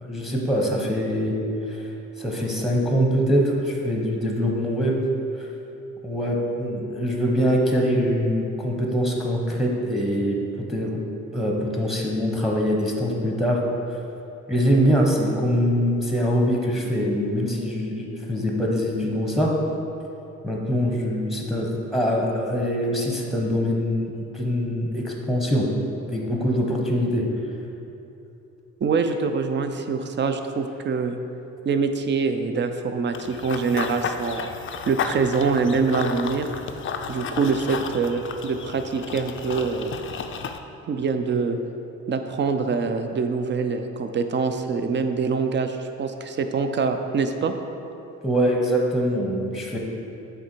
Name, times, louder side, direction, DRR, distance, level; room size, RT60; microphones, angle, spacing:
voice 1, 0.0-1.3 1.7-1.8 2.2-5.0 6.0-10.4 10.7-11.0 11.3-13.6 14.5-19.5 20.4-25.7 26.1-27.2 48.2-49.8, equal, ahead, -1 dB, 0.9 m, -23 dB
voice 2, 28.8-31.2 31.6-34.5 34.9-36.5 37.1-39.9 40.9-41.6 42.1-47.5, right 5 dB, 40° right, 7 dB, 0.5 m, -24 dB
Run / Bird vocalization bird call bird song, 33.1-40.6, left 6 dB, 40° left, 0.4 m, -33 dB
7.7 x 3.4 x 4.5 m, 2.8 s
cardioid pair, 90°, 30 cm